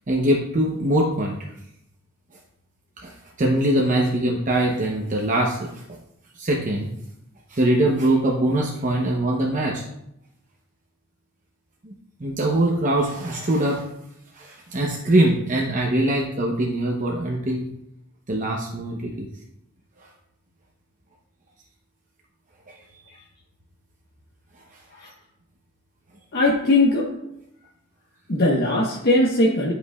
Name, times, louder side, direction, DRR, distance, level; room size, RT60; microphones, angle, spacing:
voice 1, 0.1-1.4 3.0-5.7 6.3-6.9 7.5-9.8 11.8-11.9 12.2-13.8 14.3-17.6 18.3-19.3 22.7-22.8, right 1 dB, 40° right, -1 dB, 0.8 m, -22 dB
voice 2, 26.3-27.1 28.3-29.7, left 2 dB, 50° left, -4 dB, 1.0 m, -19 dB
11.5 x 5.0 x 2.3 m, 0.80 s
head